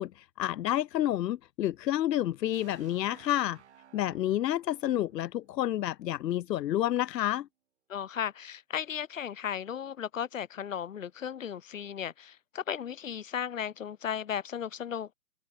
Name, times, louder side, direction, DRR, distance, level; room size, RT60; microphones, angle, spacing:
voice 1, 0.0-3.6 3.9-7.5, left 13 dB, 90° left, 0.6 m, -29 dB
sound 1, 2.5-6.4, right 9 dB, 45° right, 6.6 m, -58 dB
voice 2, 7.9-15.1, left 8 dB, 50° left, 1.5 m, -35 dB
open air
hypercardioid pair, 170°, 49 cm